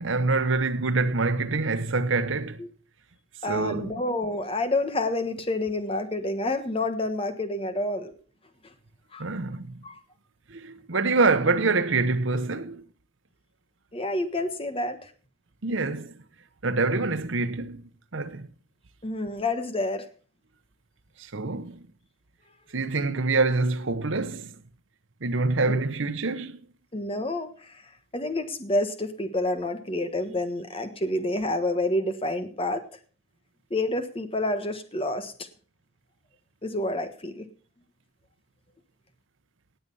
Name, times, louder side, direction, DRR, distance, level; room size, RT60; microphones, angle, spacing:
voice 1, 0.0-2.6 3.5-4.0 9.2-9.8 10.5-12.8 15.6-16.1 16.6-17.8 18.1-18.5 21.2-21.9 22.7-24.6 25.2-26.6, right 3 dB, 75° right, 1.0 m, -26 dB
voice 2, 3.4-8.1 9.1-9.2 9.8-10.0 13.9-15.1 19.0-20.1 25.7-25.8 26.9-32.8 33.7-35.5 36.6-37.4, left 2 dB, 30° left, 1.4 m, -28 dB
18.0 x 7.8 x 5.5 m
head